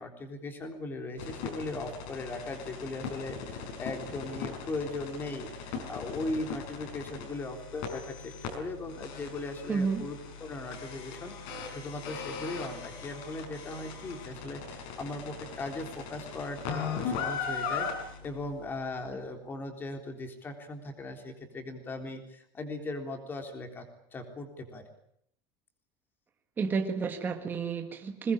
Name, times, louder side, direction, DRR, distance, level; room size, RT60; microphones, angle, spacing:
voice 1, 0.0-23.9 24.1-24.8, left 2 dB, 15° left, 5 dB, 3.6 m, -38 dB
sound 1, 1.2-19.0, left 5 dB, 55° left, 5.7 m, -39 dB
voice 2, 9.7-10.0 26.6-28.3, right 5 dB, 15° right, 5 dB, 1.7 m, -30 dB
22.0 x 19.5 x 8.8 m, 0.72 s
cardioid pair, 175°, 12 cm